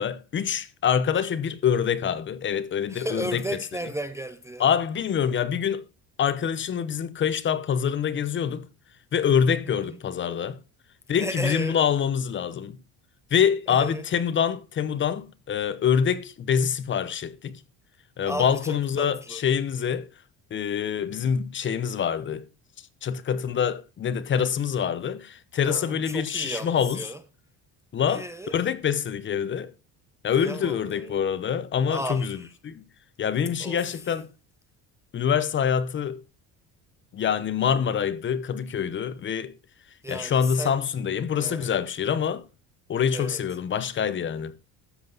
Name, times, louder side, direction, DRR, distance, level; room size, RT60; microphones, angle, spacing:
voice 1, 0.0-3.4 4.6-5.8 6.2-8.7 9.1-10.6 11.1-12.8 13.3-17.6 18.2-20.1 20.5-22.4 23.0-27.0 27.9-28.2 28.5-29.7 30.2-32.4 32.6-32.8 33.2-34.3 35.1-36.2 37.1-39.5 40.1-42.4 42.9-44.5, left 7 dB, 35° left, 0.8 m, -25 dB
voice 2, 2.9-4.7 9.7-10.0 11.2-11.8 13.7-14.1 18.2-19.4 25.7-27.2 28.1-28.6 30.3-31.2 31.9-32.5 33.6-34.1 40.0-40.9 41.4-41.7 43.1-43.4, right 1 dB, 10° right, 0.5 m, -34 dB
13.0 x 7.8 x 3.9 m
cardioid pair, 145°, 36 cm